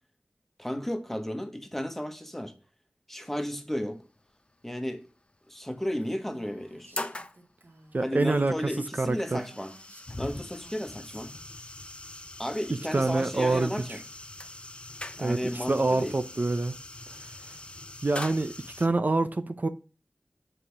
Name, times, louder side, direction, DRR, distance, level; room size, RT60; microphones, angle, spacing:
voice 1, 0.6-2.5 3.1-4.0 4.6-5.1 5.5-6.9 8.0-9.7 10.2-11.3 12.4-14.0 15.2-16.1, equal, 5° left, 1.5 m, -33 dB
sound 1, 3.9-4.2 5.3-5.4 5.9-6.0 6.6-7.4 8.5-18.9, left 2 dB, 30° left, 0.8 m, -42 dB
Female speech woman speaking, 6.0-8.5 8.8-8.9 9.3-11.3, right 2 dB, 75° right, 2.6 m, -56 dB
voice 2, 7.9-9.4 12.7-14.0 15.2-16.8 17.2-17.6 18.0-19.7, right 3 dB, 45° right, 0.6 m, -27 dB
7.7 x 5.0 x 5.9 m
wide cardioid pair, 60°, 4 cm